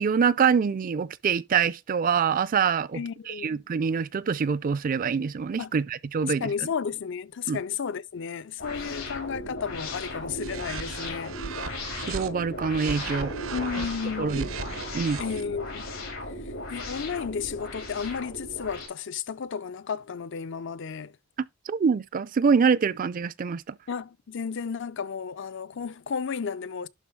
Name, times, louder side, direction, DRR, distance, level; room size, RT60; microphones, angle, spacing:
voice 1, 0.0-6.5 7.5-7.6 12.1-13.3 14.2-14.5 14.9-15.2 21.7-23.8, right 6 dB, 40° right, 0.4 m, -25 dB
voice 2, 2.9-3.6 5.6-5.7 6.2-11.4 13.5-14.7 15.2-15.9 16.3-21.1 23.9-26.9, left 6 dB, 65° left, 0.5 m, -33 dB
sound 1, 8.6-18.9, left 2 dB, 90° left, 4.6 m, -37 dB
sound 2, 10.4-12.3 12.7-15.4, right 5 dB, 90° right, 0.9 m, -37 dB
11.5 x 3.9 x 4.5 m
head